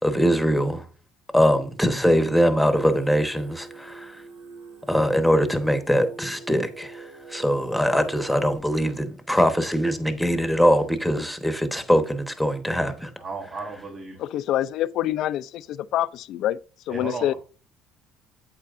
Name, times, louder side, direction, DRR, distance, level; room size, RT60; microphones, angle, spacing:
voice 1, 0.0-0.9 1.3-4.2 4.9-13.1, equal, ahead, 1.1 m, -22 dB
Singing, 2.6-8.6, right 3 dB, 80° right, 2.9 m, -42 dB
voice 2, 12.8-14.2 16.9-17.4, right 3 dB, 55° right, 3.5 m, -35 dB
voice 3, 14.2-16.6 16.9-17.3, left 12 dB, 65° left, 0.4 m, -26 dB
8.4 x 8.2 x 2.6 m
supercardioid pair, 105°, 0 cm